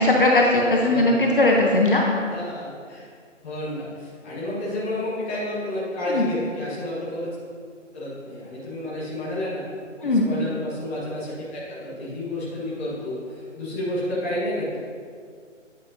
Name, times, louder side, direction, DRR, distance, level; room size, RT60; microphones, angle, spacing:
voice 1, 0.0-2.0 6.1-6.2 10.0-10.3, left 2 dB, 45° left, -1 dB, 0.8 m, -18 dB
voice 2, 0.8-1.3 2.3-3.0 3.4-7.3 7.9-9.7 10.0-14.8, left 1 dB, 10° left, -9 dB, 1.3 m, -30 dB
9.9 x 9.3 x 2.7 m, 2.1 s
figure-of-eight pair, 165°, 38 cm